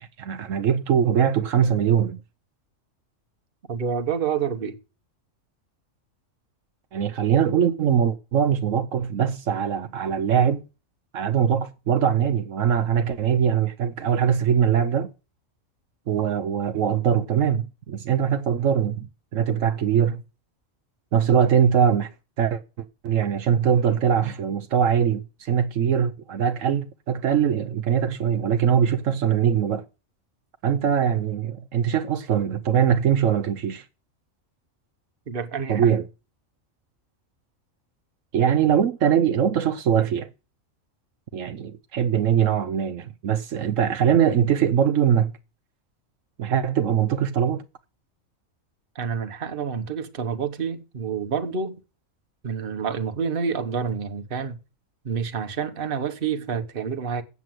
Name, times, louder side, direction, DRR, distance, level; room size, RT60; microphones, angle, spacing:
voice 1, 0.0-2.2 6.9-10.6 11.1-15.1 16.1-20.2 21.1-22.1 22.4-22.6 23.0-29.8 30.6-33.8 35.7-36.0 38.3-40.3 41.3-45.3 46.4-47.6, right 8 dB, 75° right, 1.1 m, -22 dB
voice 2, 3.7-4.8 35.3-36.0 48.9-51.8 52.4-54.6 55.0-57.2, right 6 dB, 45° right, 1.2 m, -28 dB
8.3 x 7.4 x 7.7 m
omnidirectional pair, 1.4 m